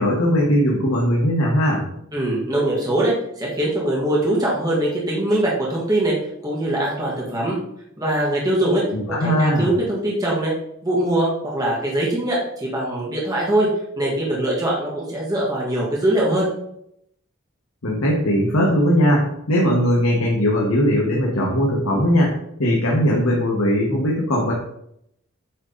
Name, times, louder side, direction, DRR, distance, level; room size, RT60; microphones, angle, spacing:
voice 1, 0.0-1.8 8.9-9.7 17.8-24.5, equal, 90° left, -3 dB, 1.4 m, -19 dB
voice 2, 2.1-6.2 6.4-7.6 8.0-8.8 9.2-10.5 10.8-13.7 14.0-16.5, right 1 dB, 20° right, -5 dB, 1.8 m, -22 dB
8.5 x 3.9 x 3.9 m, 0.74 s
head